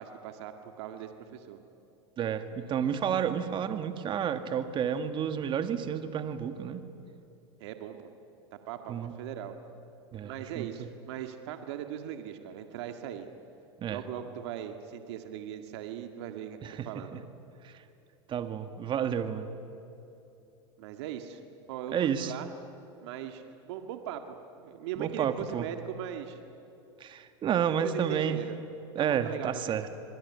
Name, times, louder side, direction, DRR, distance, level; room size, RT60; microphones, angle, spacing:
voice 1, 0.0-1.6 7.6-8.1 8.7-9.6 10.2-13.3 13.9-16.6 16.9-17.2 20.8-21.4 21.7-22.5 23.0-26.4 27.8-28.5 29.0-29.8, right 10 dB, 70° right, 6 dB, 1.9 m, -39 dB
voice 2, 2.2-6.8 8.9-9.1 10.1-10.9 13.8-14.0 16.6-16.9 17.1-17.2 17.6-17.7 18.3-19.5 21.9-22.3 25.0-25.7 27.0-28.4 29.0-29.9, right 8 dB, 35° right, 9 dB, 1.8 m, -31 dB
26.5 x 21.0 x 9.7 m, 2.8 s
supercardioid pair, 115°, 15 cm